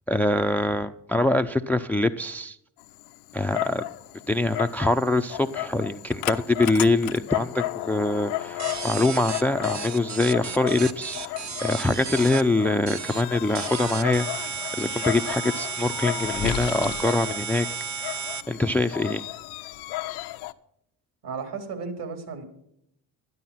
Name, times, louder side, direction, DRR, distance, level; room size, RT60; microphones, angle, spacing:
voice 1, 0.1-2.6 3.3-3.8 4.3-11.3 11.6-17.7 18.0-18.1 18.5-19.2, left 2 dB, 5° left, 10 dB, 0.6 m, -24 dB
Dog, 2.8-20.5, left 16 dB, 85° left, 0.9 m, -34 dB
sound 1, 8.6-12.4 12.9-13.2 13.5-18.4, right 6 dB, 35° right, 1.2 m, -33 dB
voice 2, 21.2-22.4, right 5 dB, 55° right, 5 dB, 4.1 m, -34 dB
12.5 x 11.0 x 5.8 m, 0.73 s
supercardioid pair, 70°, 47 cm